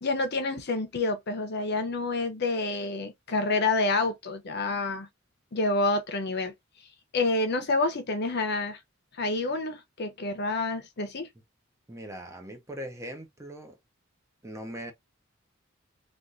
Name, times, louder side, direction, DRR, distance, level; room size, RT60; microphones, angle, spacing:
voice 1, 0.0-5.1 5.5-6.5 7.1-8.8 9.2-11.3, left 3 dB, 55° left, 0.7 m, -28 dB
voice 2, 11.9-13.8 14.4-14.9, equal, 15° right, 0.6 m, -40 dB
3.5 x 2.5 x 2.6 m
head